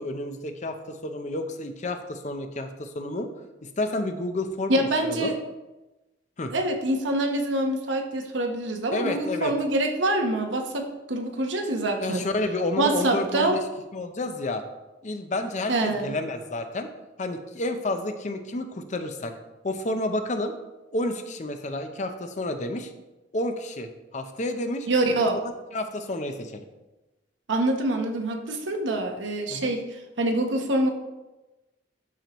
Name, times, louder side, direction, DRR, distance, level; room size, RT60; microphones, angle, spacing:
voice 1, 0.0-3.3 3.6-5.3 6.4-6.5 8.9-9.5 12.0-13.6 13.9-14.6 15.0-16.9 17.2-19.3 19.6-20.5 20.9-22.9 23.3-24.9 25.7-26.6 29.5-29.7, left 2 dB, 40° left, 7 dB, 0.6 m, -30 dB
voice 2, 4.7-5.3 6.5-12.2 12.8-13.6 15.7-16.1 24.9-25.4 27.5-30.9, right 1 dB, 80° right, 4 dB, 1.0 m, -25 dB
12.0 x 4.5 x 3.0 m, 1.1 s
head